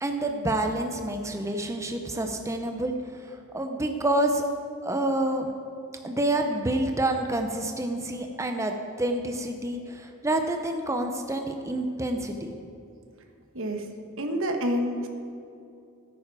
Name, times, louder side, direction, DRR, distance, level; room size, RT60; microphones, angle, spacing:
voice 1, 0.0-3.0 3.2-4.4 4.8-5.5 6.0-12.5, right 1 dB, 15° right, 4 dB, 0.6 m, -28 dB
voice 2, 14.2-15.1, equal, 65° right, 4 dB, 1.3 m, -28 dB
15.5 x 9.2 x 4.7 m, 2.6 s
head